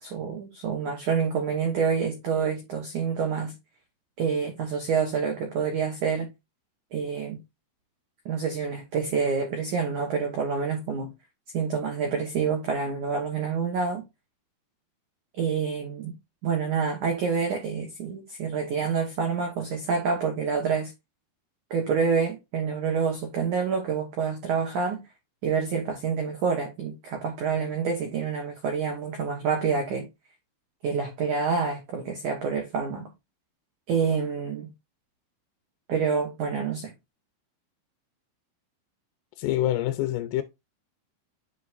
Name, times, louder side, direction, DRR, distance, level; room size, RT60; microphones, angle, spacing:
voice 1, 0.0-3.5 4.2-6.3 6.9-7.4 8.3-11.1 11.5-14.0 15.4-16.1 16.4-20.9 21.7-25.0 25.4-30.1 30.8-33.1 33.9-34.7 35.9-36.9, right 5 dB, 85° right, 1.7 m, -27 dB
voice 2, 39.4-40.4, left 13 dB, 85° left, 3.4 m, -26 dB
10.5 x 4.8 x 2.5 m
omnidirectional pair, 5.8 m